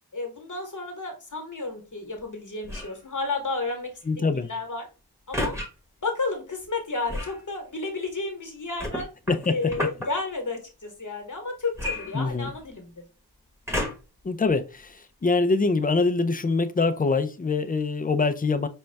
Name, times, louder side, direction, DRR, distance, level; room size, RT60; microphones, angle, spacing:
voice 1, 0.1-4.9 5.3-5.6 6.0-9.1 9.5-13.0, left 3 dB, 45° left, 1.1 m, -32 dB
sound 1, 2.6-3.0 5.3-5.7 7.1-7.4 8.8-10.1 11.7-12.7 13.7-14.2 14.9-15.0, left 1 dB, 5° right, 1.1 m, -31 dB
voice 2, 4.1-4.5 9.3-9.7 12.1-12.5 14.2-18.7, left 3 dB, 20° left, 0.4 m, -24 dB
5.2 x 2.2 x 3.3 m
wide cardioid pair, 65°, 41 cm